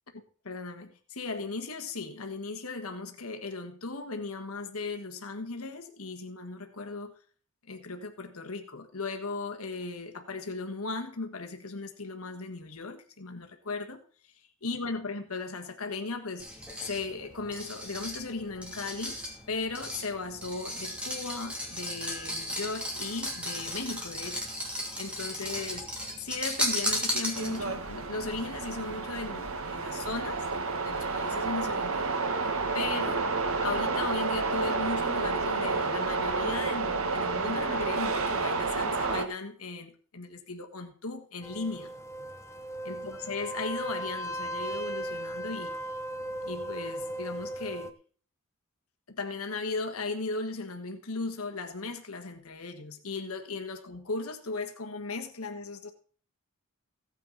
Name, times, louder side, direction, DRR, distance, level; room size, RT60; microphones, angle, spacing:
voice 1, 0.4-7.2 7.7-14.3 14.6-19.2 19.5-25.9 26.2-32.4 32.7-33.3 33.6-41.9 42.8-45.8 46.5-47.9 49.1-55.9, left 3 dB, 80° left, 5 dB, 1.5 m, -37 dB
sound 1, 16.4-27.8, equal, 5° right, 2.7 m, -35 dB
sound 2, 27.3-39.2, right 4 dB, 70° right, 1.4 m, -30 dB
sound 3, 41.4-47.9, right 1 dB, 10° left, 0.7 m, -37 dB
16.0 x 9.2 x 4.1 m, 0.42 s
head